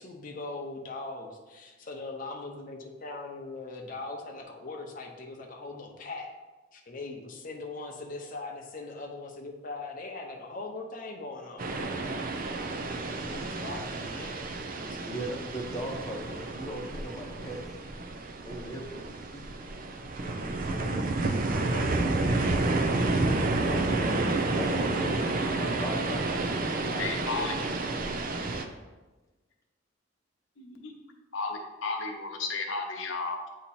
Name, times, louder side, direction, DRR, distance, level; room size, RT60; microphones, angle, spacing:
voice 1, 0.0-6.3 6.7-11.7 13.2-14.5 14.8-15.2, left 3 dB, 45° left, 1 dB, 0.7 m, -40 dB
sound 1, 11.6-28.6, right 2 dB, 45° right, 0.5 m, -30 dB
voice 2, 15.0-17.6 18.4-19.5 20.2-23.2 23.6-27.6, equal, 15° left, -2 dB, 0.9 m, -40 dB
voice 3, 27.0-27.6 30.6-31.0 31.3-33.5, left 4 dB, 90° left, 2 dB, 0.8 m, -33 dB
8.3 x 2.9 x 4.2 m, 1.2 s
head